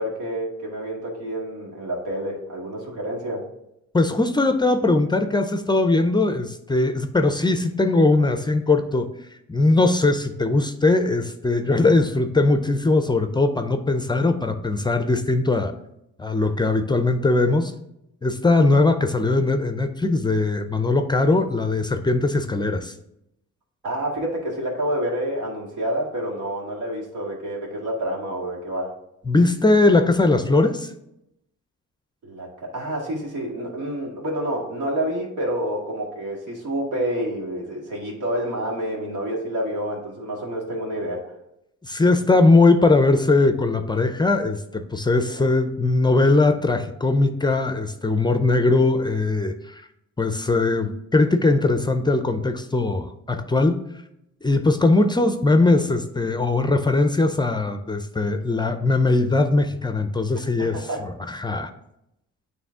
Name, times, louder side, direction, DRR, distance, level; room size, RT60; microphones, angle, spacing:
voice 1, 0.0-3.4 23.8-28.9 32.2-32.5 32.7-41.2 60.7-61.0, right 1 dB, 85° right, -2 dB, 2.0 m, -28 dB
voice 2, 3.9-9.1 9.5-15.7 16.2-17.7 18.2-22.9 29.3-30.9 41.8-49.8 50.2-53.8 54.4-61.7, left 2 dB, 15° left, 8 dB, 0.4 m, -20 dB
9.0 x 3.1 x 3.5 m, 0.82 s
cardioid pair, 90°, 30 cm